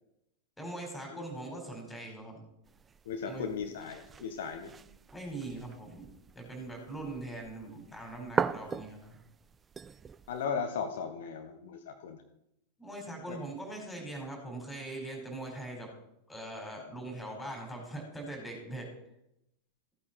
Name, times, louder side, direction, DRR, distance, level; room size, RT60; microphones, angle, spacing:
voice 1, 0.6-2.4 3.3-3.5 5.1-6.1 6.3-9.2 12.8-15.9 16.3-18.9, right 2 dB, 5° left, 1 dB, 4.6 m, -41 dB
sound 1, 2.6-10.5, right 6 dB, 20° right, 0.4 m, -40 dB
voice 2, 3.0-4.7 10.3-12.2 13.3-13.4, left 6 dB, 55° left, 6 dB, 1.1 m, -37 dB
15.0 x 8.6 x 4.4 m, 0.82 s
figure-of-eight pair, 90°, 0 cm